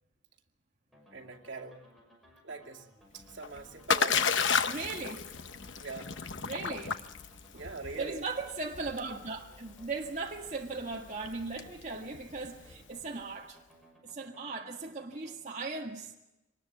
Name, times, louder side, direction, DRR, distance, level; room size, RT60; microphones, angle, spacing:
sound 1, 0.9-15.4, equal, ahead, 6.1 m, -61 dB
voice 1, 1.1-1.9 2.4-2.9 3.1-4.7 5.8-6.1 7.5-8.2, right 3 dB, 70° right, -1 dB, 2.4 m, -43 dB
Splash splatter, 3.2-13.0, left 6 dB, 80° left, 1.0 m, -33 dB
voice 2, 4.6-5.2 6.4-7.0 7.5-7.6 8.0-13.6 14.0-16.1, right 3 dB, 40° right, -1 dB, 1.8 m, -38 dB
24.0 x 20.0 x 7.4 m, 0.96 s
head